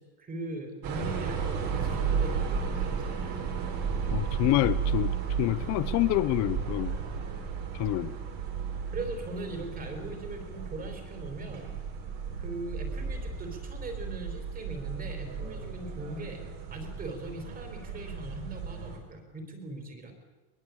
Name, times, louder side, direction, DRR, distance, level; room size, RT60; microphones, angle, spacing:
voice 1, 0.0-3.4 8.9-11.7 12.2-16.4 16.7-20.1, right 2 dB, 20° right, 6 dB, 4.2 m, -40 dB
sound 1, 0.8-19.0, right 6 dB, 50° right, 5.5 m, -34 dB
voice 2, 4.1-7.0 7.7-8.2, left 17 dB, 40° left, 15 dB, 0.7 m, -27 dB
23.0 x 21.5 x 8.5 m, 1.2 s
cardioid pair, 170°, 42 cm